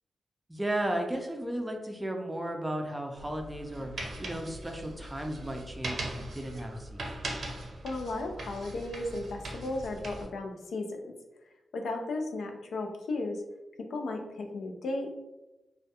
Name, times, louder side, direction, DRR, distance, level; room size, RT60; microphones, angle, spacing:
voice 1, 0.5-3.9 4.2-7.0, right 1 dB, 15° right, 3 dB, 0.4 m, -34 dB
sound 1, 3.2-10.3, right 1 dB, 65° right, 0.5 m, -40 dB
voice 2, 7.8-11.1 11.7-13.4 13.9-15.1, left 2 dB, 90° left, 3 dB, 0.3 m, -35 dB
2.2 x 2.1 x 2.7 m, 1.0 s
wide cardioid pair, 95°, 0 cm